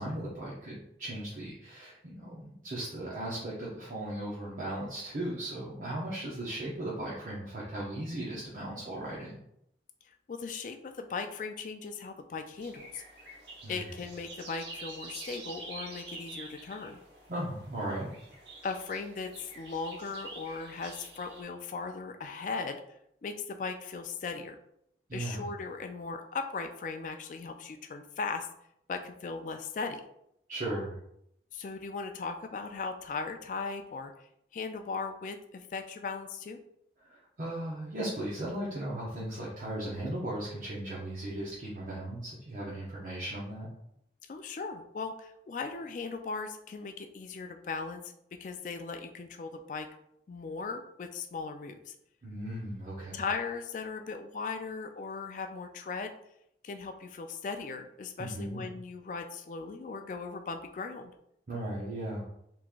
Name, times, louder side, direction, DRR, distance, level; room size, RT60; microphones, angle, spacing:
voice 1, 0.0-9.4 13.6-13.9 17.3-18.1 25.1-25.5 30.5-31.0 37.0-43.7 52.2-53.2 58.2-58.6 61.5-62.2, right 1 dB, 45° right, -7 dB, 0.7 m, -37 dB
voice 2, 10.3-13.0 13.7-17.0 18.6-22.8 23.2-24.6 25.1-28.5 28.9-30.0 31.5-34.1 34.5-36.6 44.3-48.1 48.4-49.9 50.3-51.9 53.1-56.1 56.6-61.1, left 4 dB, 45° left, 7 dB, 0.3 m, -38 dB
sound 1, 12.6-21.4, right 2 dB, 70° right, 0.9 m, -47 dB
3.6 x 2.9 x 2.4 m, 0.76 s
head